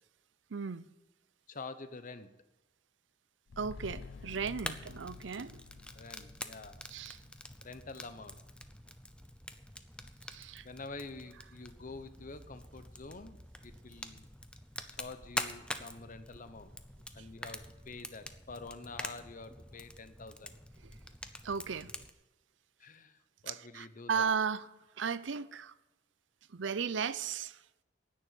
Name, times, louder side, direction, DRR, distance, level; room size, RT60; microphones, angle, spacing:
voice 1, 0.5-0.9 3.6-5.6 6.9-7.2 10.2-10.7 17.2-17.3 20.8-20.9 21.4-21.9 23.5-24.7 25.0-25.7 26.5-27.6, right 6 dB, 75° right, 0.6 m, -35 dB
voice 2, 1.5-2.3 5.9-6.8 7.6-8.4 10.6-13.4 13.6-14.3 15.0-16.8 17.1-20.5 22.8-23.2 23.4-24.3, left 3 dB, 45° left, 0.9 m, -47 dB
sound 1, 3.5-8.0 8.3-8.4, left 4 dB, 80° left, 0.5 m, -50 dB
Fire, 4.1-22.1, left 1 dB, 5° left, 0.7 m, -46 dB
10.5 x 9.5 x 9.0 m
head